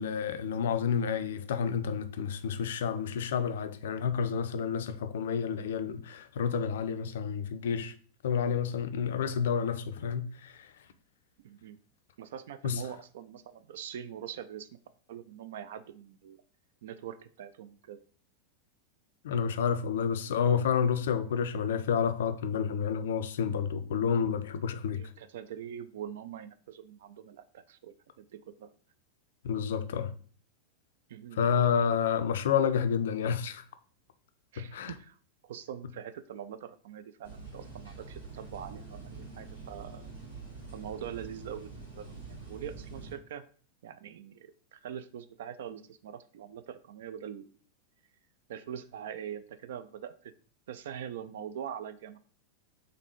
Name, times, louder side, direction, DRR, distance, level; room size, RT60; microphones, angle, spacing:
voice 1, 0.0-7.9 8.2-10.7 12.6-12.8 19.2-25.0 29.4-30.1 31.4-33.6 34.6-34.9, left 7 dB, 60° left, 0.4 m, -29 dB
voice 2, 11.4-11.8 12.2-14.7 15.1-16.4 16.8-18.0 24.9-28.7 31.1-31.4 34.5-35.2 35.4-40.1 40.7-42.1 42.5-43.5 43.8-47.5 48.5-50.3 50.7-52.2, right 9 dB, 55° right, 0.3 m, -43 dB
sound 1, 37.2-43.1, right 4 dB, 80° right, 1.9 m, -45 dB
3.9 x 3.3 x 3.1 m
figure-of-eight pair, 90°, 0 cm